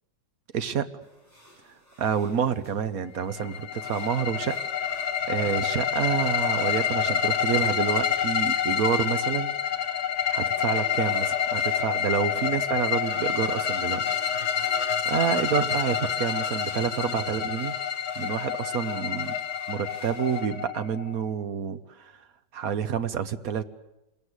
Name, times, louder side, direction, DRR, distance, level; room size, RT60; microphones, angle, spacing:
voice 1, 0.5-0.9 2.0-4.6 5.3-10.0 10.3-14.0 15.1-17.7 18.2-19.3 19.7-22.1 22.5-23.6, right 7 dB, 55° right, 10 dB, 1.5 m, -28 dB
sound 1, 1.0-20.4, equal, 10° right, 6.6 m, -53 dB
sound 2, 3.3-21.1, left 8 dB, 45° left, 1.6 m, -28 dB
27.5 x 21.5 x 8.2 m, 0.94 s
omnidirectional pair, 1.9 m